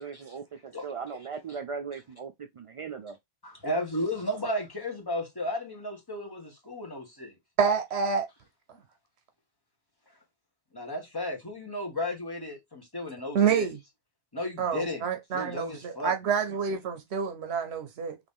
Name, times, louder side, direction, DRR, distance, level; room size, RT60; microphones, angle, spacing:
voice 1, 0.0-3.2, right 6 dB, 60° right, 0.3 m, -38 dB
voice 2, 3.4-7.3 10.7-13.7 14.3-15.0 15.3-16.1, left 1 dB, 20° left, 1.2 m, -34 dB
voice 3, 7.6-8.3 13.3-13.8 14.6-18.2, right 6 dB, 80° right, 1.0 m, -27 dB
4.1 x 3.0 x 3.5 m
omnidirectional pair, 1.1 m